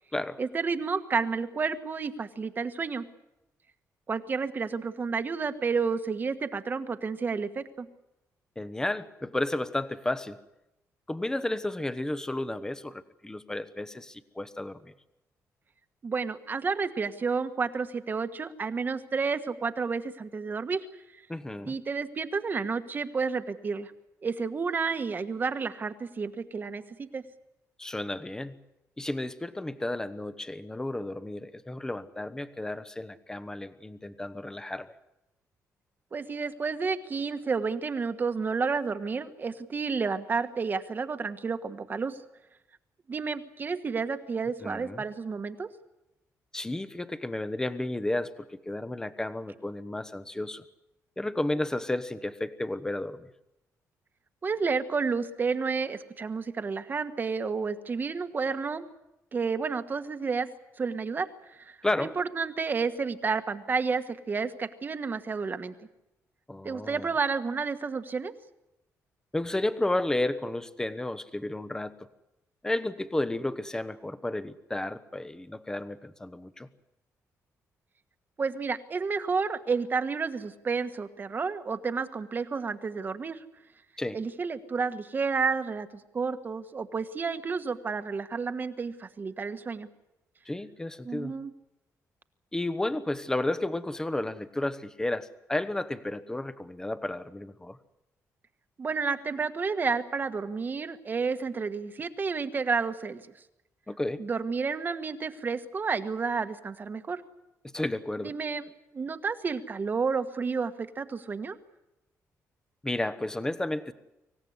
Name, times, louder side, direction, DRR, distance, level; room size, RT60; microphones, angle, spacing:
voice 1, 0.4-3.0 4.1-7.9 16.0-20.9 21.2-21.3 21.7-23.9 24.2-27.2 36.1-42.2 43.1-45.7 54.4-58.9 59.3-60.5 60.8-65.7 66.6-68.3 78.4-83.4 84.1-85.9 86.1-89.9 91.0-91.5 98.8-103.2 104.2-107.2 108.2-108.7 108.9-111.6, right 5 dB, 35° right, 9 dB, 1.5 m, -31 dB
voice 2, 8.6-10.4 11.1-14.9 21.3-21.7 27.8-28.6 29.0-34.9 44.6-45.0 46.5-50.6 51.2-53.3 61.8-62.2 66.5-67.1 69.3-72.1 72.6-76.7 84.0-84.2 90.4-91.4 92.5-97.8 103.9-104.2 107.6-108.3 112.8-113.9, left 1 dB, 10° left, 12 dB, 1.1 m, -32 dB
25.5 x 16.5 x 9.6 m, 0.93 s
cardioid pair, 130°, 6 cm